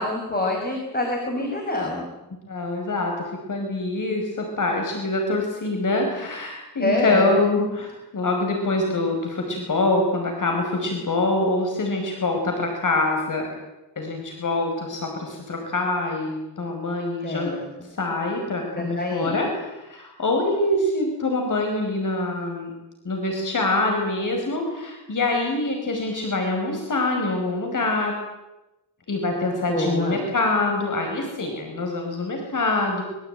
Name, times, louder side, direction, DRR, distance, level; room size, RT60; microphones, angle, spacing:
voice 1, 0.0-2.1 6.8-7.4 17.2-17.9 18.7-19.4 29.7-30.2, left 2 dB, 20° left, 1 dB, 5.9 m, -26 dB
voice 2, 2.5-7.9 8.1-13.5 14.0-17.5 17.9-22.7 23.1-28.2 29.1-33.0, left 2 dB, 50° left, 2 dB, 5.3 m, -25 dB
26.0 x 23.5 x 9.2 m, 0.99 s
wide cardioid pair, 140°, 41 cm